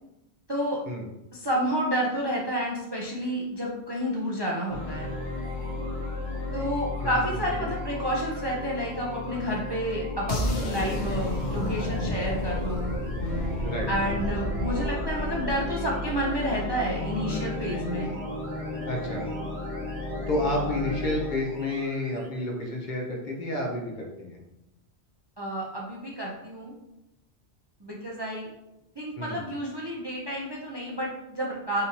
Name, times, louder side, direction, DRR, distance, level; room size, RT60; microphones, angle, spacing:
voice 1, 1.3-5.1 6.5-12.9 13.9-18.1 25.4-26.7 27.8-28.5 29.0-31.9, equal, 35° right, -3 dB, 0.4 m, -30 dB
sound 1, 4.7-22.3, left 2 dB, 75° right, 1.8 m, -34 dB
voice 2, 7.0-7.7 13.6-13.9 18.9-19.3 20.3-24.4 29.2-29.4, left 1 dB, 50° left, 0 dB, 0.8 m, -30 dB
sound 2, 10.3-16.3, left 1 dB, 80° left, 1.0 m, -31 dB
5.0 x 2.7 x 2.8 m, 0.94 s
omnidirectional pair, 1.1 m